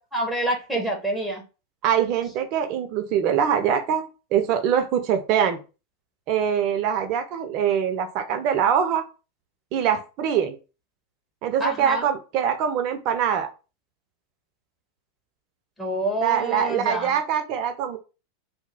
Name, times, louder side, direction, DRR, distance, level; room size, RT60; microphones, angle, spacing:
voice 1, 0.1-1.4 11.6-12.1 15.8-17.1, right 1 dB, 5° left, -1 dB, 1.3 m, -27 dB
voice 2, 1.8-5.6 6.3-9.0 9.7-10.6 11.4-13.5 16.2-18.0, right 8 dB, 50° right, 7 dB, 0.6 m, -23 dB
2.8 x 2.1 x 4.1 m, 0.32 s
figure-of-eight pair, 90°, 0 cm